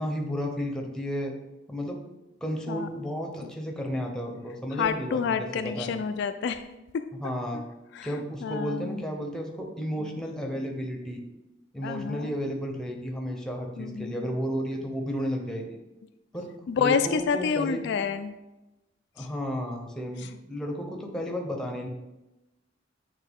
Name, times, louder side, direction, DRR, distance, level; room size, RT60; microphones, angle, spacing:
voice 1, 0.0-1.3 1.7-2.0 2.4-5.9 7.2-7.6 8.0-11.2 11.7-15.8 16.3-16.5 16.8-17.9 19.2-21.9, equal, 5° left, 1 dB, 0.8 m, -32 dB
voice 2, 4.7-6.7 7.5-7.6 7.9-8.1 8.4-9.0 10.0-10.1 10.6-10.7 11.8-12.4 13.8-14.3 16.7-18.4 19.2-19.3, left 6 dB, 60° left, 9 dB, 0.3 m, -29 dB
8.4 x 3.3 x 3.6 m, 0.99 s
head